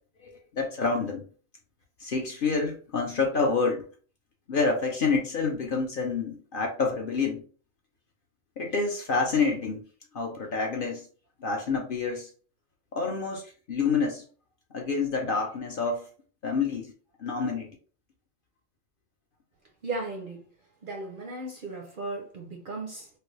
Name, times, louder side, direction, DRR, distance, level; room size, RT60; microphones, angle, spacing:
voice 1, 0.2-1.2 2.0-3.9 4.5-7.4 8.6-9.8 10.1-11.1 11.4-12.3 12.9-14.2 14.7-16.0 16.4-16.9 17.2-17.7, left 4 dB, 55° left, 0.6 m, -28 dB
voice 2, 19.8-20.4 20.8-23.1, right 2 dB, 55° right, 0.6 m, -36 dB
3.2 x 2.2 x 3.0 m
omnidirectional pair, 1.3 m